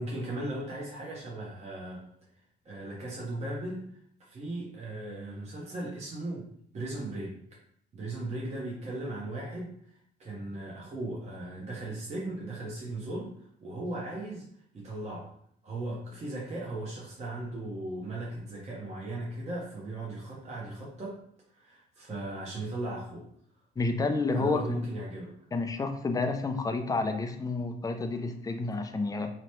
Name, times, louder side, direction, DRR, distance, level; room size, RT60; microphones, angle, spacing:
voice 1, 0.0-2.0 2.6-3.9 4.2-6.5 6.7-7.4 7.9-9.7 10.2-14.5 14.7-15.3 15.6-21.2 21.5-23.3 24.4-25.3, right 1 dB, 35° right, -4 dB, 0.7 m, -37 dB
voice 2, 23.8-24.6 25.5-29.3, left 3 dB, 20° left, 6 dB, 0.4 m, -30 dB
2.9 x 2.1 x 3.0 m, 0.65 s
cardioid pair, 90°, 20 cm